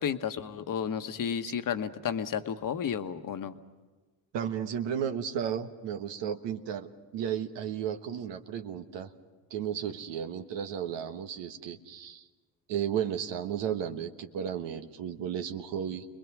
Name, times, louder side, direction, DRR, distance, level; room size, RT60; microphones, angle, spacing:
voice 1, 0.0-3.6, left 8 dB, 45° left, 9 dB, 1.3 m, -32 dB
voice 2, 4.3-9.1 9.5-12.2 12.7-16.1, right 8 dB, 65° right, 7 dB, 1.4 m, -34 dB
29.5 x 21.0 x 6.2 m, 1.3 s
hypercardioid pair, 65°, 45 cm